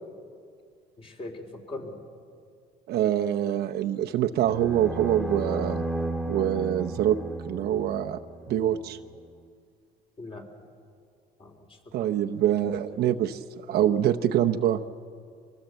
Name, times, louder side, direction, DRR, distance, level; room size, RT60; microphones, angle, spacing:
voice 1, 1.0-2.0 7.7-7.8 10.2-10.5 11.4-11.8 12.3-12.4 12.9-13.1, left 2 dB, 35° left, 3 dB, 3.6 m, -41 dB
voice 2, 2.9-5.8 6.3-7.2 7.5-8.2 8.5-9.0 11.9-14.8, right 11 dB, 70° right, 5 dB, 0.8 m, -25 dB
sound 1, 4.4-8.7, right 2 dB, 10° left, 2.1 m, -34 dB
24.5 x 19.0 x 8.0 m, 2.2 s
cardioid pair, 110°, 17 cm